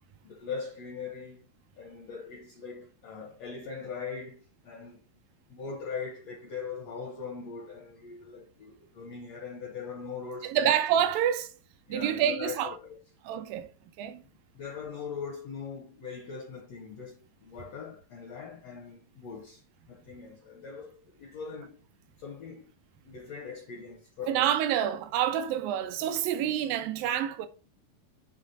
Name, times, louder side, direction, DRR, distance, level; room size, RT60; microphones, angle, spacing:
voice 1, 0.2-1.4 1.8-5.0 5.5-10.7 11.9-13.0 14.5-21.8 22.2-22.7 23.0-24.5, left 5 dB, 75° left, 1.5 m, -41 dB
voice 2, 10.4-11.5 11.9-12.8 13.2-13.7 14.0-14.2 24.3-27.5, right 10 dB, 85° right, 2.2 m, -27 dB
7.3 x 3.3 x 4.0 m
omnidirectional pair, 4.2 m